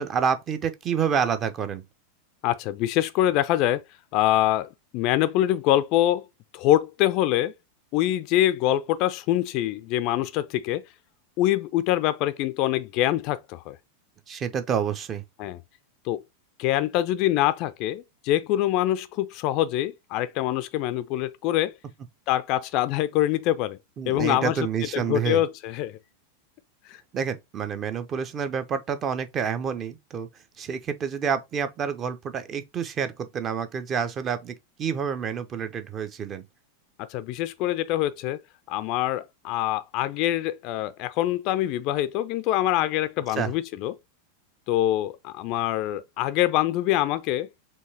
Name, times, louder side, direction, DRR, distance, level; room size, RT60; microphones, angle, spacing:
voice 1, 0.0-1.8 14.3-15.2 24.0-25.4 27.1-30.3 30.6-36.4 43.3-43.5, right 7 dB, 30° right, 0.6 m, -28 dB
voice 2, 2.4-3.8 4.1-6.3 6.5-7.5 7.9-10.8 11.4-13.8 15.4-15.6 16.1-16.2 16.6-21.7 22.3-23.8 24.1-24.5 24.9-26.0 26.9-27.0 37.1-38.4 38.7-43.9 44.7-47.5, left 13 dB, 40° left, 0.4 m, -24 dB
4.5 x 2.8 x 2.7 m
figure-of-eight pair, 90°, 0 cm